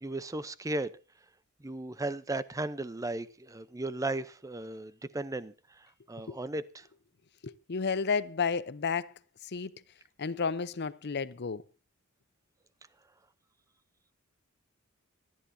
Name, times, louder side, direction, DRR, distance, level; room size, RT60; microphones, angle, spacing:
voice 1, 0.0-0.9 1.6-6.9, right 2 dB, 15° right, 0.6 m, -36 dB
voice 2, 7.4-9.1 9.4-9.7 10.2-11.6, left 5 dB, 50° left, 0.7 m, -32 dB
25.5 x 10.5 x 2.7 m
head